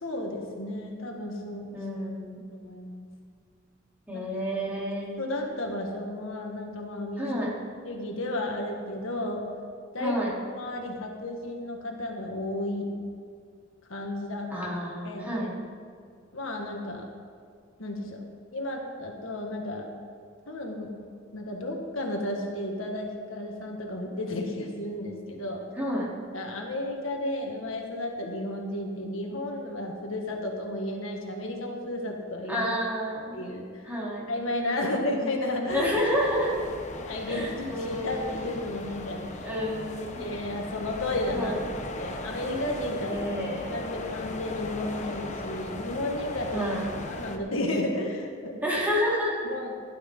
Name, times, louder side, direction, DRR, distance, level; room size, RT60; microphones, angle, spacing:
voice 1, 0.0-1.7 2.5-3.1 4.1-4.2 5.2-7.3 7.9-9.5 9.9-10.2 10.6-13.0 13.9-14.5 15.0-15.3 16.3-17.1 17.8-18.2 18.5-19.9 20.5-20.9 21.3-25.6 26.3-32.7 33.3-33.8 34.3-35.9 37.1-39.5 40.2-41.5 42.0-43.2 43.7-46.6 47.1-48.6 49.4-49.8, left 1 dB, 75° left, 1 dB, 1.8 m, -33 dB
voice 2, 1.7-2.4 4.1-5.1 7.2-7.5 10.0-10.3 14.5-15.5 25.7-26.1 32.5-33.5 33.8-34.3 35.7-36.6 37.3-38.5 39.4-40.2 41.3-41.6 43.1-43.8 46.5-46.9 48.6-49.4, equal, 10° right, -6 dB, 3.3 m, -29 dB
sound 1, 35.7-47.4, left 2 dB, 35° left, 1.0 m, -38 dB
16.5 x 12.0 x 3.8 m, 2.2 s
head